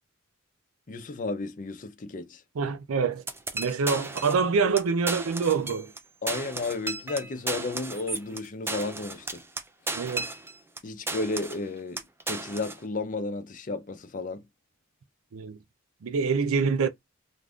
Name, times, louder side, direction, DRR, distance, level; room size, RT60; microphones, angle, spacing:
voice 1, 0.9-2.4 6.2-9.4 10.8-14.4, left 3 dB, 40° left, 0.5 m, -33 dB
voice 2, 2.6-3.2 3.5-5.9 9.9-10.3 15.3-15.6 16.0-16.9, right 5 dB, 85° right, 0.4 m, -26 dB
sound 1, 3.3-4.5 4.8-4.9 5.1-6.0 6.3-10.8 11.1-11.7 12.0-12.8, right 3 dB, 10° right, 0.3 m, -34 dB
2.5 x 2.4 x 3.4 m
head